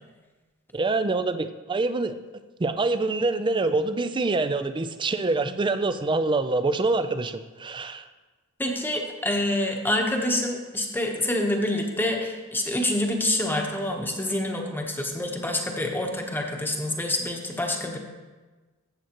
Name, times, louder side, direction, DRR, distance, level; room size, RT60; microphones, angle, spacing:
voice 1, 0.7-2.2 2.6-8.1, right 3 dB, 20° right, 11 dB, 0.4 m, -25 dB
voice 2, 8.6-18.0, left 1 dB, 10° left, 2 dB, 1.0 m, -27 dB
14.0 x 7.8 x 3.0 m, 1.3 s
head